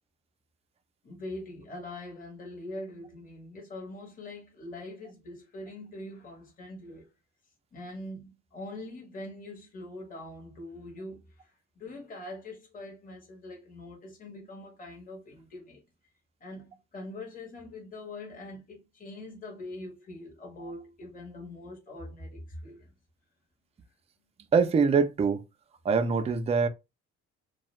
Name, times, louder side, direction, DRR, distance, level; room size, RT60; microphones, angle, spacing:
voice 1, 1.0-7.1 7.7-15.8 16.4-22.9, left 1 dB, 30° left, 0.9 m, -43 dB
voice 2, 24.5-25.4 25.8-26.7, right 5 dB, 20° right, 0.3 m, -23 dB
2.3 x 2.1 x 3.0 m
cardioid pair, 90°, 30 cm